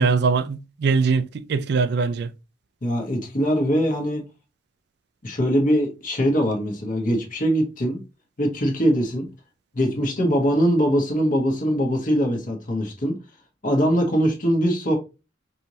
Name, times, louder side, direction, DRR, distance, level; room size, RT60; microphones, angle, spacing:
voice 1, 0.0-2.3, right 4 dB, 55° right, 0.4 m, -21 dB
voice 2, 2.8-4.2 5.2-8.0 8.4-9.2 9.7-13.1 13.6-15.0, equal, 45° left, 1.2 m, -22 dB
5.3 x 3.1 x 2.7 m
head